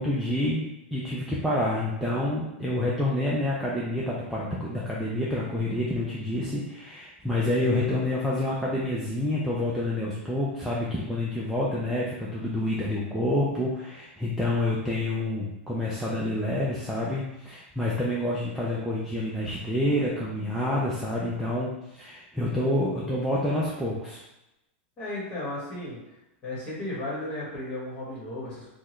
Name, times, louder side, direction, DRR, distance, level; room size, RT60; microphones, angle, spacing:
voice 1, 0.0-24.2, left 1 dB, ahead, -6 dB, 0.3 m, -28 dB
voice 2, 25.0-26.0 26.4-28.7, left 1 dB, 25° left, -6 dB, 1.4 m, -34 dB
3.6 x 2.2 x 3.0 m, 0.92 s
supercardioid pair, 160°, 6 cm